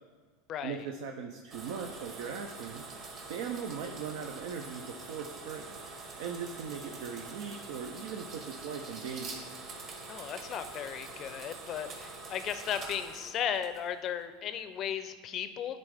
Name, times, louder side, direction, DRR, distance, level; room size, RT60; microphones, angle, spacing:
voice 1, 0.6-2.9 3.3-5.8 6.2-9.5, right 6 dB, 65° right, 4 dB, 0.5 m, -39 dB
sound 1, 1.5-14.1, right 3 dB, 45° right, 1.6 m, -45 dB
voice 2, 10.1-15.8, left 9 dB, 45° left, 11 dB, 0.5 m, -36 dB
10.5 x 3.9 x 3.6 m, 1.5 s
hypercardioid pair, 85°, 0 cm